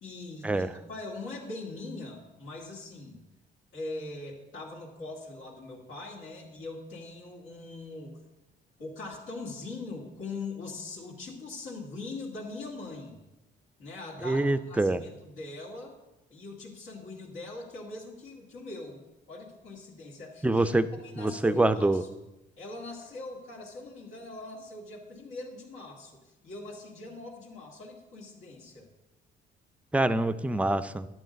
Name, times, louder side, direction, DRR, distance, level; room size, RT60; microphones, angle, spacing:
voice 1, 0.0-3.2 3.7-8.2 8.8-13.2 13.8-15.9 16.3-19.0 19.3-22.1 22.6-28.9, left 2 dB, 85° left, -3 dB, 2.3 m, -42 dB
voice 2, 14.2-15.0 20.4-20.9 21.2-22.0 29.9-31.1, right 2 dB, 5° right, 12 dB, 0.4 m, -25 dB
11.0 x 7.4 x 5.2 m, 1.0 s
cardioid pair, 90°, 20 cm